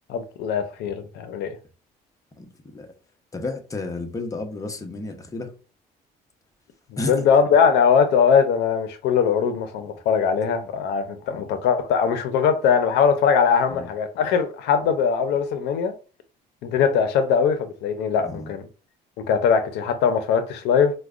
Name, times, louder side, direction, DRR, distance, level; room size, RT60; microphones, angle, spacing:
voice 1, 0.1-1.6 7.1-15.9 16.6-18.6 19.2-20.9, left 6 dB, 80° left, 0.5 m, -21 dB
voice 2, 2.4-2.9 3.3-5.5 7.0-7.3 11.3-11.5 13.7-13.9 18.2-18.5, left 2 dB, 20° left, 0.7 m, -32 dB
4.6 x 2.1 x 2.4 m
cardioid pair, 110°, 17 cm